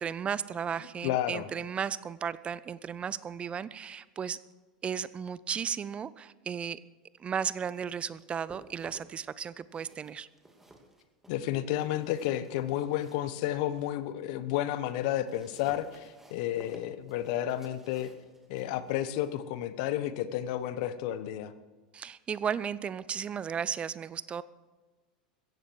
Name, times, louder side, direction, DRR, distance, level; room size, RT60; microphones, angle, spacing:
voice 1, 0.0-4.4 4.8-6.8 7.2-10.3 21.9-24.4, right 7 dB, 25° right, 18 dB, 0.5 m, -35 dB
voice 2, 1.0-1.4 11.3-18.1 18.5-21.5, left 12 dB, 60° left, 14 dB, 1.1 m, -31 dB
sound 1, 7.7-9.3 9.6-14.0 14.4-21.0, right 1 dB, 10° right, 2.7 m, -57 dB
16.0 x 14.5 x 4.7 m, 1.3 s
hypercardioid pair, 90°, 4 cm